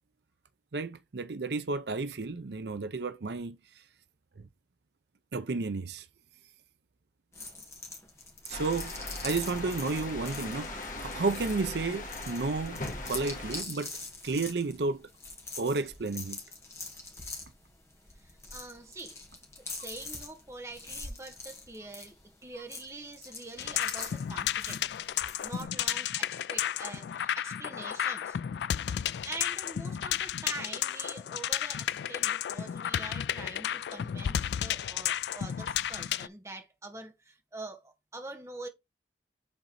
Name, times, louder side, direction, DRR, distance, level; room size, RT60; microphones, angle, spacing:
voice 1, 0.7-3.6 4.4-4.5 5.3-6.1 8.5-13.9 14.2-15.1 15.6-16.4, right 3 dB, 75° right, 0.6 m, -32 dB
sound 1, 7.3-25.6, left 3 dB, 15° left, 1.8 m, -44 dB
sound 2, 8.5-13.6, left 2 dB, 50° left, 2.0 m, -39 dB
voice 2, 18.2-19.2 19.7-24.8 25.4-28.4 29.2-38.7, right 2 dB, 15° right, 1.3 m, -45 dB
sound 3, 23.6-36.3, left 10 dB, 75° left, 0.3 m, -32 dB
7.4 x 4.0 x 4.1 m
head